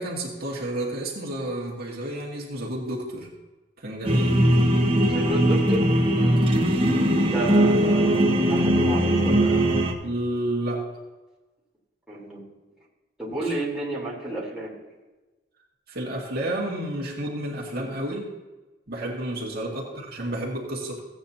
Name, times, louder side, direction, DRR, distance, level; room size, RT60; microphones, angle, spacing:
voice 1, 0.0-3.3 3.8-4.4 6.2-6.5 10.0-10.9 15.9-18.3 18.9-21.0, right 1 dB, 60° right, -3 dB, 2.2 m, -31 dB
sound 1, 4.0-9.9, right 1 dB, 30° right, 1.5 m, -20 dB
voice 2, 5.0-5.9 7.3-9.8 12.1-12.5 13.2-14.7 19.6-20.0, right 1 dB, 5° right, -6 dB, 3.7 m, -32 dB
16.0 x 9.1 x 2.8 m, 1.2 s
head